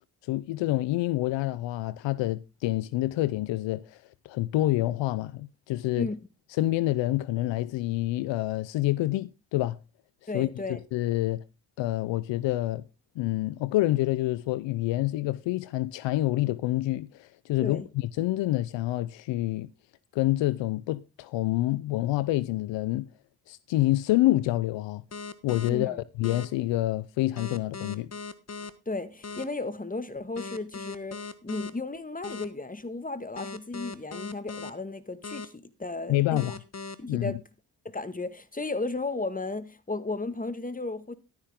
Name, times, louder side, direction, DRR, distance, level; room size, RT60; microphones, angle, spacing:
voice 1, 0.2-6.1 6.5-9.8 10.3-10.5 10.9-11.4 11.8-12.8 13.2-19.7 20.1-23.1 23.5-25.0 25.4-28.1 36.1-36.6 37.1-37.4, left 16 dB, 80° left, 0.6 m, -27 dB
voice 2, 10.3-10.8 17.6-17.9 25.7-26.0 28.8-36.5 37.0-37.4 37.8-41.1, left 3 dB, 20° left, 1.8 m, -34 dB
sound 1, 25.1-25.7 26.2-26.5 27.4-28.7 29.2-29.4 30.4-31.7 32.2-32.5 33.4-34.7 35.2-35.5 36.4-36.9, left 4 dB, 35° left, 1.3 m, -38 dB
12.5 x 10.5 x 3.7 m
supercardioid pair, 45°, 43 cm